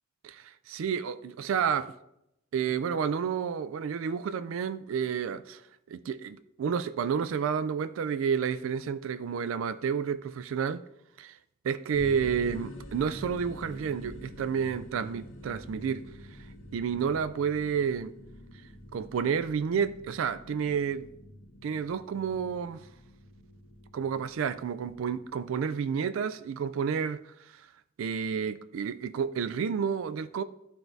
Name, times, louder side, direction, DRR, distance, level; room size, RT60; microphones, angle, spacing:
voice 1, 0.2-1.9 2.5-5.6 5.9-10.8 11.2-11.4 11.6-16.0 16.7-18.1 18.9-21.1 21.6-22.9 23.9-27.7 28.0-30.4, right 7 dB, 80° right, 0.3 m, -30 dB
sound 1, 11.9-25.3, equal, 80° left, 1.3 m, -47 dB
12.0 x 4.5 x 2.6 m
head